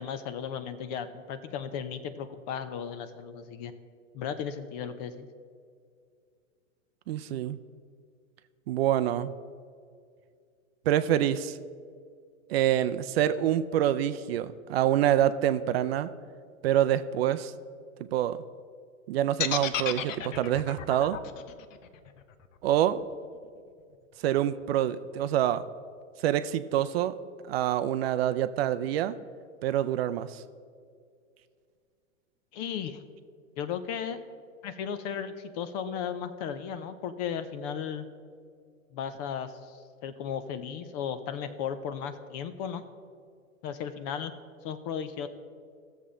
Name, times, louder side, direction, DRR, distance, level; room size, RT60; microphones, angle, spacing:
voice 1, 0.0-3.7 4.1-5.3 32.5-33.0 33.6-34.2 34.6-38.1 38.9-42.8 43.6-44.3 44.6-45.3, left 7 dB, 30° left, 11 dB, 0.5 m, -35 dB
voice 2, 7.1-7.6 8.7-9.3 10.9-11.6 12.5-16.1 16.6-17.5 18.1-18.4 19.1-21.2 22.6-23.0 24.2-25.6 26.2-27.1 27.5-29.2 29.6-30.4, right 11 dB, 50° right, 12 dB, 0.5 m, -26 dB
sound 1, 19.4-23.4, left 9 dB, 65° left, 0.8 m, -33 dB
16.0 x 7.1 x 3.7 m, 2.2 s
hypercardioid pair, 125°, 42 cm